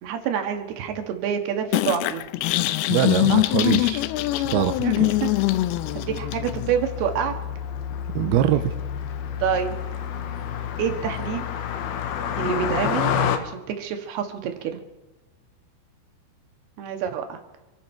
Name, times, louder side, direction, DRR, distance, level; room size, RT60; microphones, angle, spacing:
voice 1, 0.0-2.2 3.3-3.4 4.8-5.3 5.9-7.3 9.4-9.8 10.8-11.4 12.4-13.1 13.4-14.8 16.8-17.4, right 8 dB, 65° right, 5 dB, 3.3 m, -27 dB
sound 1, 1.7-6.7, left 17 dB, 90° left, 2.2 m, -23 dB
voice 2, 2.9-4.0 4.4-4.7 8.2-8.7, right 12 dB, 80° right, 9 dB, 2.3 m, -22 dB
Car passing by, 3.2-13.4, left 8 dB, 70° left, 2.7 m, -30 dB
27.0 x 11.5 x 4.5 m, 1.1 s
omnidirectional pair, 5.2 m